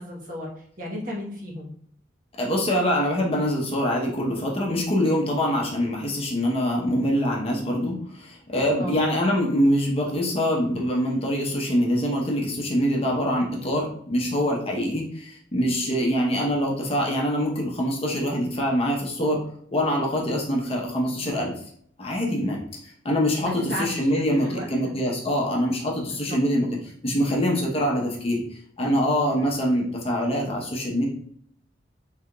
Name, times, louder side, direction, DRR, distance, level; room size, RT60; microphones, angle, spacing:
voice 1, 0.0-1.7 8.8-9.0 23.4-24.9 26.1-26.4, equal, 45° right, -3 dB, 1.0 m, -34 dB
voice 2, 2.4-19.4 19.7-21.5 22.0-22.6 22.8-26.7 27.0-31.1, equal, 30° left, -2 dB, 0.7 m, -24 dB
3.7 x 3.4 x 2.2 m, 0.64 s
head